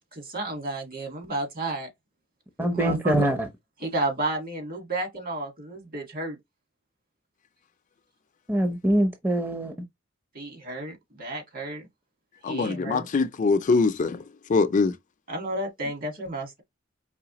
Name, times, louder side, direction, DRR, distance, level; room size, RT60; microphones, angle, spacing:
voice 1, 0.1-1.9 2.7-3.3 3.8-6.4 10.3-11.9 12.5-13.1 15.3-16.6, right 1 dB, 45° right, 1.8 m, -32 dB
voice 2, 2.6-3.5 8.5-9.7, right 1 dB, 10° right, 0.6 m, -23 dB
voice 3, 12.4-14.2 14.5-15.0, left 4 dB, 40° left, 0.4 m, -23 dB
4.8 x 3.2 x 2.9 m
head